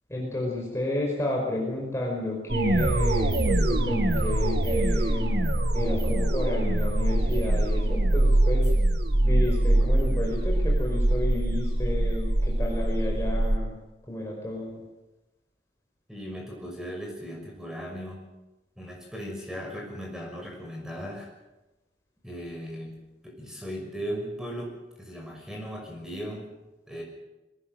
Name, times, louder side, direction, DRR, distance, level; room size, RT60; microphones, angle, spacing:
voice 1, 0.1-8.7 9.2-13.8 14.1-14.8, left 1 dB, 15° left, -2 dB, 5.1 m, -31 dB
sound 1, 2.5-13.6, right 1 dB, 60° right, 1.6 m, -23 dB
voice 2, 16.1-18.3 18.8-21.3 22.2-23.0 23.2-26.5 26.9-27.0, equal, 5° right, 0 dB, 6.2 m, -37 dB
22.5 x 18.5 x 7.8 m, 1.0 s
head